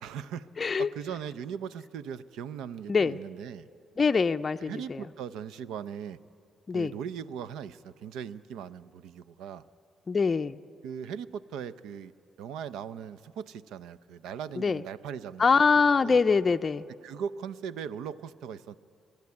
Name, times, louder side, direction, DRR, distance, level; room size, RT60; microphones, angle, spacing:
voice 1, 0.0-0.5 0.8-3.7 4.6-6.2 6.7-9.6 10.8-12.1 12.4-15.6 16.0-16.2 16.9-18.7, right 8 dB, 90° right, 16 dB, 0.5 m, -39 dB
voice 2, 0.6-0.9 2.9-3.2 4.0-5.0 6.7-6.9 10.1-10.6 14.6-14.8 15.4-16.9, left 5 dB, 35° left, 7 dB, 0.4 m, -24 dB
24.5 x 12.0 x 9.6 m, 2.4 s
cardioid pair, 90°, 0 cm